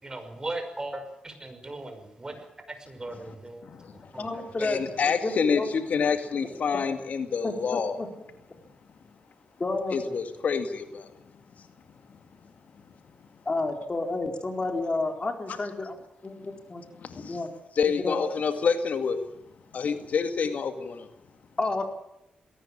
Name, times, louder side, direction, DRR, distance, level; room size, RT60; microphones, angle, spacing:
voice 1, 0.0-3.6 4.1-4.7, right 2 dB, 25° right, 7 dB, 5.9 m, -38 dB
voice 2, 3.6-4.3 4.6-8.0 9.9-11.1 17.0-17.4 17.8-19.2 19.7-21.1, left 6 dB, 65° left, 8 dB, 2.2 m, -28 dB
voice 3, 4.2-5.7 7.4-8.1 9.6-10.2 13.5-15.9 16.2-16.8 17.2-17.5 17.8-18.2 21.6-21.9, left 2 dB, 35° left, 5 dB, 4.3 m, -31 dB
20.0 x 18.0 x 8.8 m, 0.84 s
cardioid pair, 75°, 3 cm